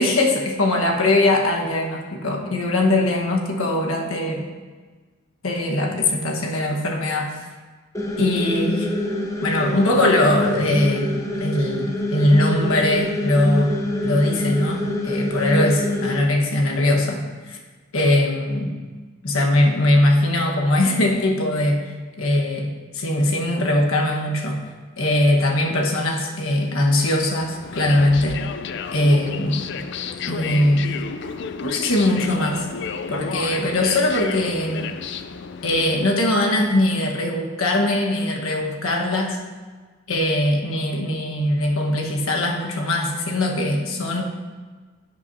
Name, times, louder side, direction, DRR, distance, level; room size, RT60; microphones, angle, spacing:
voice 1, 0.0-4.5 5.4-7.4 8.2-8.9 9.4-11.1 11.4-13.7 14.0-17.6 17.9-18.7 19.2-21.8 22.2-24.6 25.0-28.4 28.9-29.7 30.2-30.9 31.6-32.7 33.1-34.9 35.6-39.4 40.1-44.2, left 1 dB, 75° left, 0 dB, 1.3 m, -21 dB
sound 1, 7.9-16.2, left 1 dB, 15° left, 0.7 m, -26 dB
sound 2, 27.4-36.1, left 6 dB, 55° left, 0.4 m, -31 dB
13.0 x 8.3 x 2.7 m, 1.4 s
head